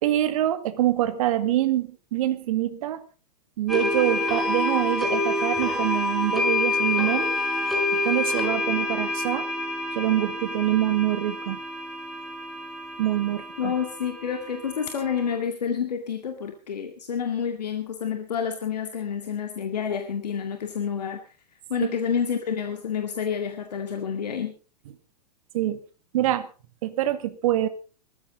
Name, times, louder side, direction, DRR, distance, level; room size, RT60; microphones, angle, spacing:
voice 1, 0.0-3.0 3.6-7.3 7.9-9.5 10.0-11.6 13.0-13.7 21.8-21.9 25.5-25.8 26.1-26.5 26.8-27.7, right 13 dB, 55° right, 11 dB, 1.9 m, -25 dB
sound 1, 3.7-15.3, left 2 dB, ahead, 5.7 m, -27 dB
voice 2, 13.6-21.2 21.7-24.5, left 7 dB, 75° left, 5 dB, 2.1 m, -29 dB
20.0 x 14.5 x 3.9 m, 0.35 s
figure-of-eight pair, 105°, 21 cm